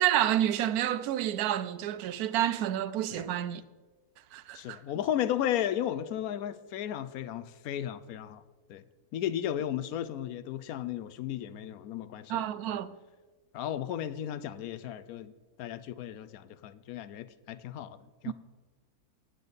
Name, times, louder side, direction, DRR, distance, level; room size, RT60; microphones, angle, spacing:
voice 1, 0.0-3.6 4.3-4.8 12.3-12.9 18.3-18.4, right 11 dB, 85° right, 1.1 m, -29 dB
voice 2, 4.5-8.4 8.7-8.8 9.1-12.4 12.7-12.8 13.5-15.3 15.6-18.0 18.2-18.3, left 11 dB, 75° left, 1.0 m, -34 dB
18.5 x 6.8 x 4.1 m
omnidirectional pair, 1.6 m